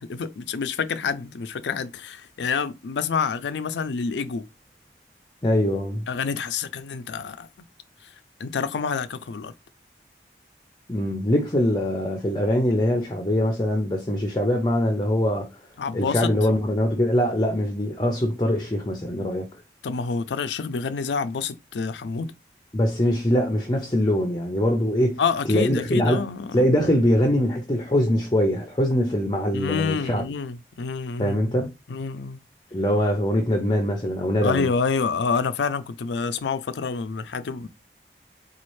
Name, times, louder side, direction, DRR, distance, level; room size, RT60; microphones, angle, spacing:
voice 1, 0.0-4.4 6.1-7.5 8.4-9.5 15.8-16.3 19.8-22.3 25.2-26.6 29.5-31.5 31.9-32.4 34.4-37.7, left 5 dB, 85° left, 0.4 m, -28 dB
voice 2, 5.4-6.1 10.9-15.5 15.9-19.5 22.7-25.2 25.5-26.2 26.5-30.2 31.2-31.7 32.7-34.7, left 1 dB, 25° left, 0.6 m, -23 dB
4.2 x 2.4 x 3.1 m
head